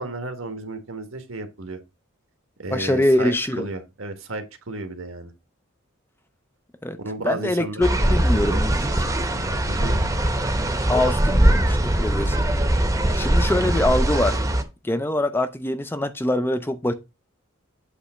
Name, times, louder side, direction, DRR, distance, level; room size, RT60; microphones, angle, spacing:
voice 1, 0.0-1.8 2.6-5.3 7.0-8.6 9.7-10.0, right 2 dB, 80° right, 1.5 m, -33 dB
voice 2, 2.7-3.7 6.8-7.0 7.2-8.9 10.9-12.5 12.9-14.4 14.8-16.9, left 1 dB, 10° left, 0.5 m, -24 dB
sound 1, 7.8-14.6, right 1 dB, 15° right, 0.9 m, -21 dB
8.3 x 3.3 x 6.2 m
head